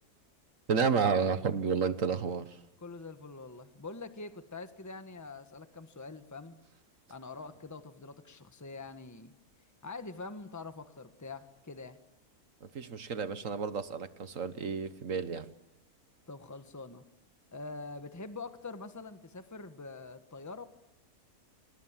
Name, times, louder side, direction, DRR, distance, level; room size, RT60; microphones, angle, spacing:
voice 1, 0.7-2.6 12.6-15.5, right 6 dB, 60° right, 1.6 m, -31 dB
voice 2, 2.8-6.6 7.1-9.3 9.8-12.0 16.3-17.1 17.5-20.6, left 3 dB, 10° left, 1.3 m, -44 dB
30.0 x 26.5 x 7.5 m
omnidirectional pair, 1.6 m